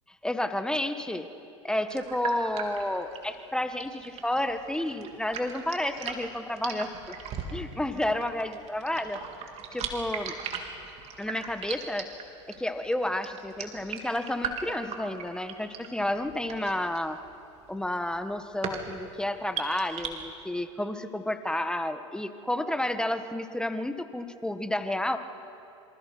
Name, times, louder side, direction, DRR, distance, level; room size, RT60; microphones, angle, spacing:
voice 1, 0.2-1.3 1.6-7.2 7.5-9.2 9.7-10.3 11.2-12.1 12.5-17.2 17.7-25.2, left 1 dB, 5° left, 9 dB, 1.5 m, -31 dB
sound 1, 1.9-20.1, right 6 dB, 45° right, 3.7 m, -39 dB
27.5 x 26.5 x 6.1 m, 2.7 s
hypercardioid pair, 85°, 16 cm